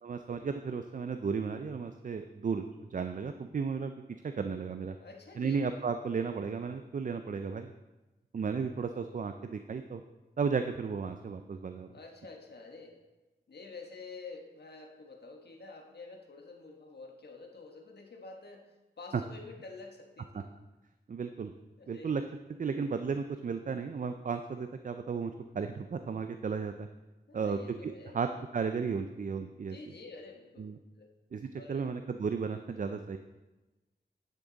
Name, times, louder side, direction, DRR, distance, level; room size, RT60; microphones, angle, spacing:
voice 1, 0.0-3.9 4.2-5.0 5.4-7.7 8.3-10.0 10.4-11.9 19.1-19.2 20.3-20.4 21.1-21.5 21.9-22.2 22.6-26.9 27.3-28.3 28.5-29.8 30.6-30.8 31.3-33.2, right 5 dB, 50° right, 8 dB, 0.4 m, -34 dB
voice 2, 5.0-5.6 11.9-13.0 13.5-20.5 21.8-22.1 27.3-28.2 29.6-30.7 31.0-31.1 31.6-31.9, left 3 dB, 70° left, 2 dB, 1.3 m, -49 dB
10.5 x 6.2 x 4.0 m, 1.1 s
wide cardioid pair, 90°, 18 cm